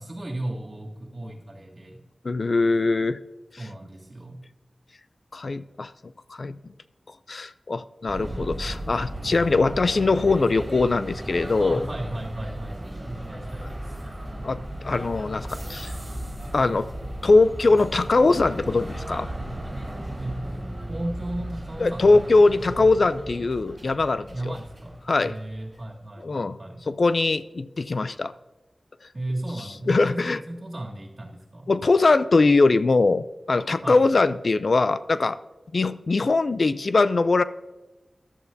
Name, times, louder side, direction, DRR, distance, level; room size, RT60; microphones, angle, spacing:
voice 1, 0.0-2.0 3.6-4.4 11.6-14.0 20.2-20.4 20.9-22.9 24.3-25.0 25.2-26.8 29.1-31.7 33.8-34.1, right 1 dB, 45° right, -2 dB, 2.7 m, -35 dB
voice 2, 2.2-3.2 5.3-5.9 6.3-6.6 7.3-11.9 14.4-14.6 14.8-15.9 16.5-16.9 17.2-19.3 21.8-24.3 25.1-25.3 26.2-26.6 26.9-28.3 29.9-30.4 31.7-35.4 35.7-37.4, left 3 dB, 60° left, 14 dB, 0.4 m, -21 dB
sound 1, 8.1-25.8, right 1 dB, 20° right, 4.3 m, -36 dB
15.0 x 11.5 x 2.7 m, 1.1 s
wide cardioid pair, 90°, 0 cm